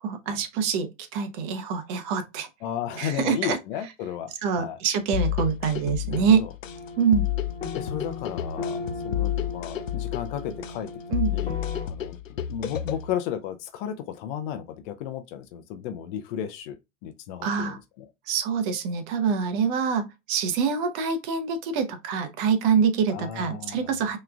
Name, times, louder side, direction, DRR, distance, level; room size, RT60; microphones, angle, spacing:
voice 1, 0.0-2.5 3.0-3.6 4.4-6.4 7.0-7.3 11.1-11.3 17.4-17.8 18.3-24.2, right 6 dB, 40° right, 1.0 m, -25 dB
voice 2, 2.6-4.3 4.6-4.8 6.0-6.5 7.7-10.9 11.2-18.1 23.1-23.9, left 10 dB, 40° left, 0.7 m, -34 dB
sound 1, 5.1-13.1, left 12 dB, 85° left, 0.6 m, -30 dB
sound 2, 6.6-11.9, left 3 dB, 15° left, 1.9 m, -37 dB
5.8 x 3.2 x 2.3 m
hypercardioid pair, 105°, 38 cm